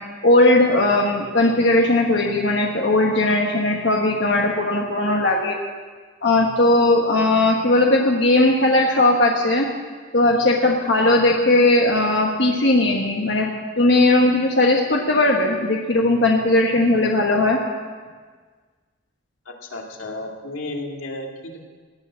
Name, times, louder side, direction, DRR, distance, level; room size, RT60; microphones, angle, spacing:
voice 1, 0.2-5.6 6.2-9.7 10.1-13.5 13.8-17.6, left 2 dB, 60° left, 0 dB, 1.3 m, -18 dB
voice 2, 19.5-21.6, left 2 dB, 85° left, 1 dB, 2.2 m, -33 dB
17.5 x 10.0 x 7.4 m, 1.5 s
head